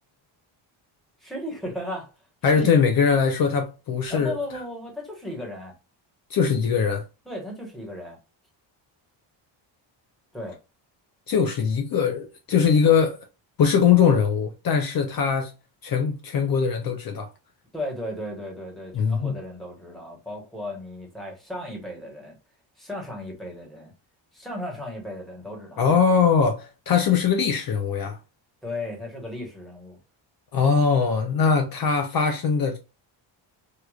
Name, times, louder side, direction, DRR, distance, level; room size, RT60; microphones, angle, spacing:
voice 1, 1.2-2.1 2.5-2.8 4.1-5.7 7.3-8.2 10.3-10.6 17.7-22.4 22.8-23.9 24.3-25.8 28.6-30.0, left 1 dB, ahead, 1.1 m, -35 dB
voice 2, 2.4-4.4 6.3-7.0 11.3-13.2 13.6-15.5 15.8-17.3 18.9-19.4 25.8-28.2 30.5-32.8, left 6 dB, 50° left, 0.6 m, -21 dB
4.7 x 2.3 x 2.3 m
cardioid pair, 165°, 47 cm